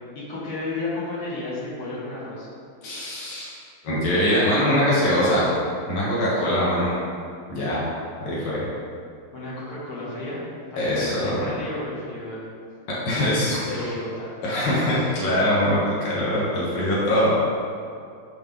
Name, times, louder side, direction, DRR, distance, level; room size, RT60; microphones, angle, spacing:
voice 1, 0.1-2.5 9.3-10.4 10.7-12.4 13.7-14.3, left 2 dB, 75° left, -8 dB, 2.5 m, -32 dB
voice 2, 2.8-3.5 3.8-5.5 5.9-6.9 7.5-7.8 8.2-8.6 10.8-11.4 13.1-14.0 14.4-17.4, left 1 dB, 60° left, -8 dB, 1.8 m, -22 dB
6.6 x 4.7 x 3.6 m, 2.3 s
omnidirectional pair, 2.4 m